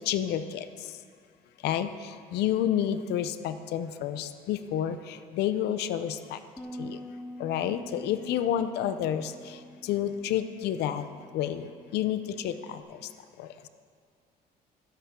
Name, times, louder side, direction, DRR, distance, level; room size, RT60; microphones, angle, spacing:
voice 1, 0.1-0.4 1.6-1.9 2.3-4.9 5.4-6.1 7.4-9.2 9.9-11.0 11.3-11.6 11.9-12.2 12.4-12.5, left 11 dB, 80° left, 11 dB, 0.6 m, -28 dB
Bass guitar, 6.6-12.8, equal, 5° left, 1.4 m, -46 dB
15.5 x 12.5 x 3.7 m, 2.1 s
cardioid pair, 110°, 17 cm